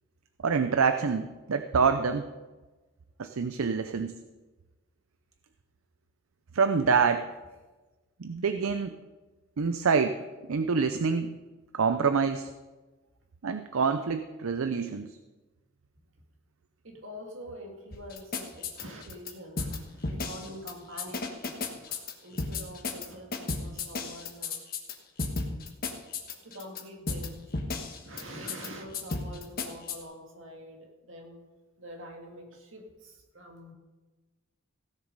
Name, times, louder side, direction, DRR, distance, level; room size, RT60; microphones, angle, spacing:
voice 1, 0.4-2.3 3.2-4.1 6.5-7.3 8.2-8.9 9.6-10.2 10.5-11.3 11.7-12.5 13.4-15.1, right 5 dB, 85° right, 9 dB, 0.6 m, -26 dB
voice 2, 16.8-24.6 25.3-25.4 26.4-27.4 28.0-31.4 31.8-33.7, equal, 70° right, 2 dB, 2.1 m, -45 dB
sound 1, 17.9-19.3 19.6-19.8 20.0-20.7 21.0-22.1 22.4-23.1 23.3-24.9 25.2-26.8 27.1-27.3 27.5-28.2 28.5-28.7 28.9-30.0, left 4 dB, 45° left, 1.3 m, -33 dB
16.0 x 7.2 x 5.3 m, 1.2 s
head